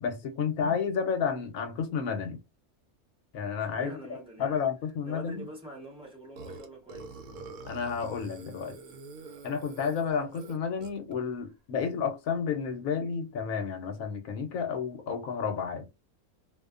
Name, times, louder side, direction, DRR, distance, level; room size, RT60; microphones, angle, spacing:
voice 1, 0.0-2.4 3.3-5.5 7.7-8.8 9.4-15.9, left 6 dB, 75° left, 1.0 m, -31 dB
voice 2, 3.7-4.7 5.0-7.2, right 1 dB, 5° right, 0.7 m, -45 dB
Burping eructation, 6.4-11.1, right 3 dB, 75° right, 1.0 m, -45 dB
2.5 x 2.1 x 2.4 m
omnidirectional pair, 1.6 m